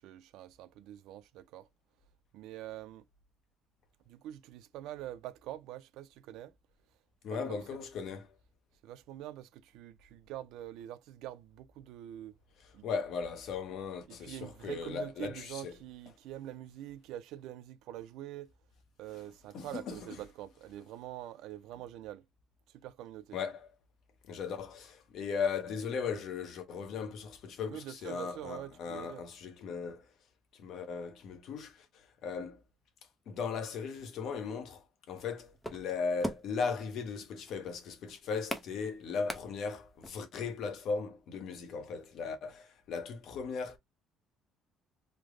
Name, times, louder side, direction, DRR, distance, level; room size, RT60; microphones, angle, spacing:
voice 1, 0.0-1.7 2.3-3.0 4.1-6.5 7.3-7.9 8.8-12.3 12.7-12.9 14.1-18.5 19.0-22.2 22.7-23.4 27.6-29.2, right 13 dB, 75° right, 0.3 m, -45 dB
voice 2, 7.2-8.3 12.8-15.8 19.5-20.2 23.3-23.7 24.2-30.1 30.5-32.6 33.3-43.8, left 5 dB, 50° left, 0.8 m, -37 dB
sound 1, 35.1-40.1, equal, 5° left, 0.5 m, -42 dB
3.3 x 2.0 x 3.6 m
cardioid pair, 175°, 0 cm